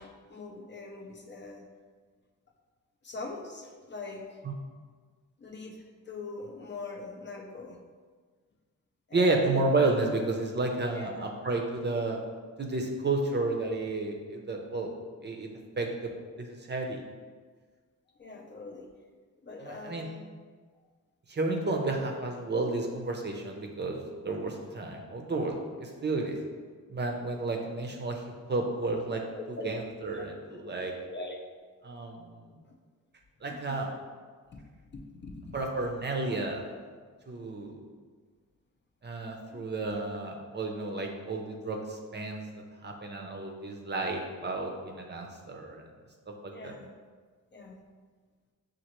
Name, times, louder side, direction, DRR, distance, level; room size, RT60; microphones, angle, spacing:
voice 1, 0.0-1.7 3.0-4.4 5.4-7.8 9.1-9.6 10.9-11.3 18.2-18.9 19.4-20.2 29.3-29.7 30.1-30.3 30.5-31.4 33.5-33.9 34.5-34.6 34.9-36.0 37.3-37.4 39.5-39.6 43.1-43.2 46.5-46.9 47.5-47.8, left 3 dB, 35° left, 1 dB, 0.5 m, -43 dB
voice 2, 9.1-12.2 12.6-14.9 15.2-15.5 15.8-16.1 16.4-17.0 19.6-20.1 21.3-26.4 26.9-28.2 28.5-29.2 29.5-30.9 31.8-32.6 33.4-33.9 35.5-36.7 37.3-37.8 39.0-42.4 42.8-45.9 46.4-46.7, right 2 dB, 35° right, 2 dB, 0.5 m, -31 dB
6.2 x 2.5 x 2.9 m, 1.5 s
wide cardioid pair, 100°, 32 cm